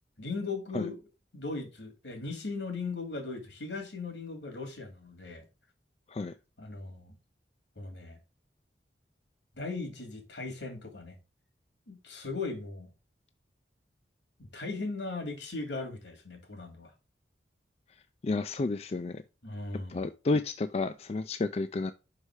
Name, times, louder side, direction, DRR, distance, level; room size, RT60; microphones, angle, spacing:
voice 1, 0.2-1.0 1.3-5.4 6.6-7.2 7.8-8.2 9.5-11.1 11.9-12.9 14.4-16.9 19.4-20.1, left 3 dB, 85° left, 2.6 m, -38 dB
voice 2, 18.2-19.2 19.9-21.9, left 3 dB, 35° left, 0.3 m, -31 dB
5.4 x 4.8 x 4.8 m
head